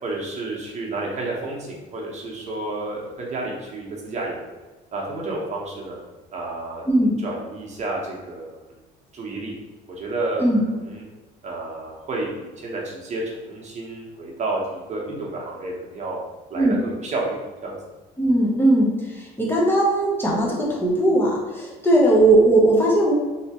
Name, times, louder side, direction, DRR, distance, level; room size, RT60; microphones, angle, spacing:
voice 1, 0.0-4.5 4.9-6.0 6.3-6.8 7.2-8.6 9.1-9.5 9.9-11.0 11.4-16.2 16.5-17.4 17.6-17.8, right 2 dB, 40° right, -2 dB, 0.9 m, -30 dB
voice 2, 6.9-7.2 10.4-10.6 16.6-16.8 18.2-23.1, right 1 dB, 10° left, -4 dB, 0.8 m, -18 dB
3.2 x 2.9 x 2.9 m, 1.2 s
cardioid pair, 110°, 17 cm